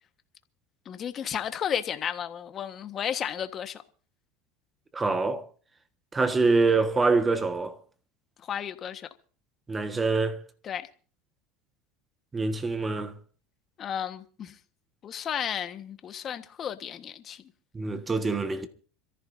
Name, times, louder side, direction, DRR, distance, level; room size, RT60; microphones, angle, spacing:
voice 1, 0.8-3.8 8.4-9.1 10.6-10.9 13.8-14.6 15.0-17.4, left 9 dB, 35° left, 1.4 m, -33 dB
voice 2, 4.9-5.5 6.1-7.7 9.7-10.4 12.3-13.1 17.7-18.7, right 3 dB, 15° right, 1.5 m, -25 dB
26.5 x 14.5 x 2.7 m
supercardioid pair, 120°, 0 cm